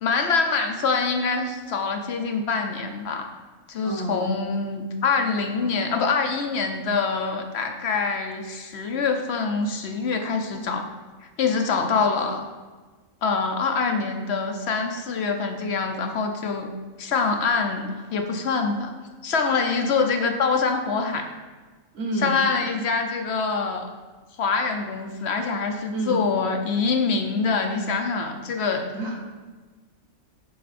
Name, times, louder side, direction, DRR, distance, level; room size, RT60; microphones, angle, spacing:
voice 1, 0.0-3.3 3.7-10.8 11.4-12.5 13.2-16.7 17.0-18.9 19.2-21.3 22.1-23.9 24.4-28.8, left 4 dB, 60° left, 4 dB, 0.8 m, -25 dB
voice 2, 3.8-4.2 21.9-22.4 25.9-26.2 28.9-29.4, right 2 dB, 85° right, 0 dB, 1.8 m, -29 dB
6.7 x 5.5 x 4.2 m, 1.4 s
omnidirectional pair, 1.4 m